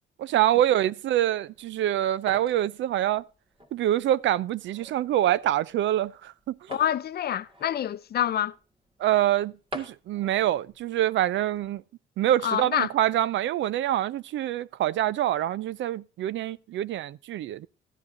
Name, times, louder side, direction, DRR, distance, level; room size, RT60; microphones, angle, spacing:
voice 1, 0.2-3.2 3.7-6.6 9.0-11.8 12.2-17.7, right 12 dB, 70° right, 0.5 m, -25 dB
sound 1, 1.4-11.8, left 1 dB, 25° right, 1.8 m, -48 dB
voice 2, 6.7-8.6 12.4-12.9, left 10 dB, 55° left, 0.6 m, -27 dB
14.5 x 9.7 x 2.6 m
cardioid pair, 90°, 20 cm